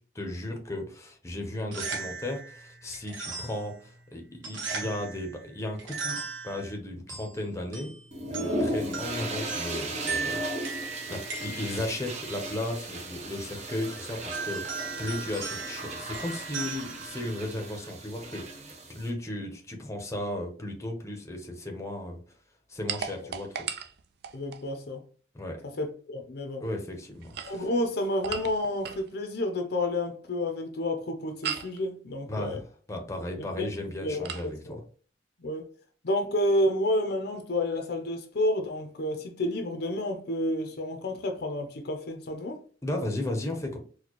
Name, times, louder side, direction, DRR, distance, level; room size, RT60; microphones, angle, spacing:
voice 1, 0.0-7.9 8.3-10.5 11.1-22.2 22.7-23.7 25.3-25.6 26.6-27.7 32.3-34.8 42.8-43.8, left 1 dB, 15° left, 0.7 m, -35 dB
sound 1, 1.5-17.8, right 4 dB, 75° right, 1.1 m, -39 dB
sound 2, 8.1-19.1, right 1 dB, 40° right, 0.7 m, -36 dB
sound 3, 22.9-24.7 27.1-29.1 31.4-31.8 34.2-34.5, right 7 dB, 60° right, 0.4 m, -37 dB
voice 2, 24.3-25.0 25.8-26.6 27.4-32.6 33.6-33.7 34.0-34.8 35.4-35.7 36.0-42.6, left 1 dB, 55° left, 0.6 m, -30 dB
4.2 x 2.2 x 2.9 m
head